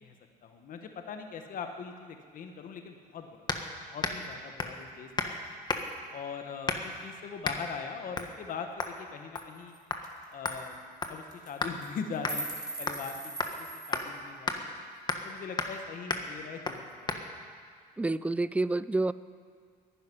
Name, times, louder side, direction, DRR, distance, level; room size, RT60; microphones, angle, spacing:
voice 1, 0.4-3.5 3.9-5.4 6.1-9.8 10.3-13.3 13.6-14.8 15.2-17.2, left 6 dB, 55° left, 5 dB, 1.3 m, -41 dB
sound 1, 3.5-3.7 4.0-4.3 4.6-4.8 5.2-5.4 5.7-6.0 6.7-7.0 7.4-7.6 8.2-8.3 8.8-9.0 9.4-9.6 9.9-10.0 10.5-11.8 12.2-12.4 12.9-13.1 13.4-13.6 13.9-14.1 14.5-14.6 15.1-15.3 15.6-15.8 16.1-16.3 16.7-16.8 17.1-17.2, left 3 dB, 25° left, 1.3 m, -33 dB
sound 2, 9.4-9.5 9.7-9.8 10.0-10.2 10.5-10.6 11.3-11.5 11.8-14.1, right 2 dB, 25° right, 2.4 m, -40 dB
voice 2, 18.0-19.1, right 2 dB, 10° right, 16 dB, 0.3 m, -28 dB
11.5 x 10.5 x 9.9 m, 2.1 s
cardioid pair, 110°, 17 cm